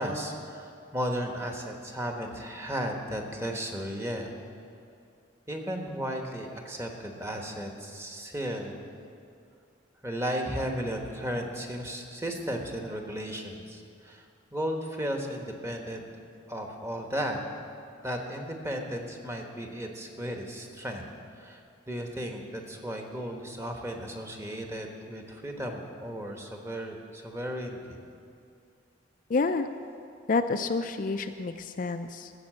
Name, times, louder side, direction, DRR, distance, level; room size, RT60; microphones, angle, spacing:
voice 1, 0.0-4.3 5.5-8.8 10.0-16.1 16.5-17.4 18.0-21.0 21.3-21.6 21.9-28.0, equal, 15° right, 2 dB, 1.1 m, -35 dB
voice 2, 29.3-29.7 30.3-32.3, left 4 dB, 45° left, 7 dB, 0.4 m, -28 dB
14.0 x 7.3 x 7.4 m, 2.4 s
head